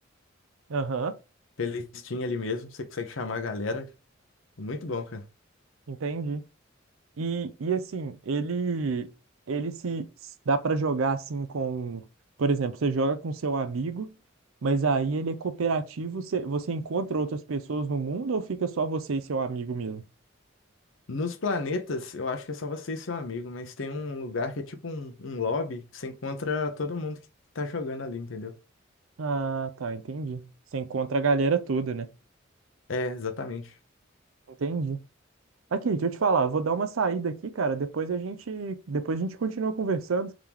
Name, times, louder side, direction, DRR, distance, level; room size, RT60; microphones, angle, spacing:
voice 1, 0.7-1.2 5.9-6.4 7.2-9.1 9.5-10.1 10.5-12.0 12.4-14.2 14.6-20.0 29.2-32.1 34.6-35.0 35.7-40.3, right 4 dB, 90° right, 0.5 m, -28 dB
voice 2, 1.6-3.9 4.6-5.3 21.1-27.2 27.5-28.6 32.9-33.7, left 3 dB, 75° left, 0.8 m, -32 dB
3.7 x 3.0 x 3.5 m
head